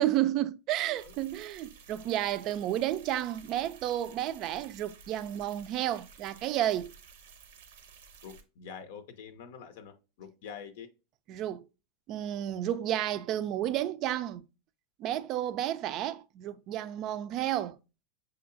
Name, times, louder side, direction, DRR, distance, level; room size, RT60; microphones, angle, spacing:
voice 1, 0.0-6.9 11.3-11.6 12.1-14.4 15.0-17.8, right 12 dB, 45° right, 0.3 m, -31 dB
sound 1, 0.9-8.4, right 6 dB, 80° right, 0.6 m, -54 dB
voice 2, 8.2-10.9, left 7 dB, 70° left, 0.6 m, -46 dB
6.0 x 2.8 x 2.5 m
supercardioid pair, 135°, 0 cm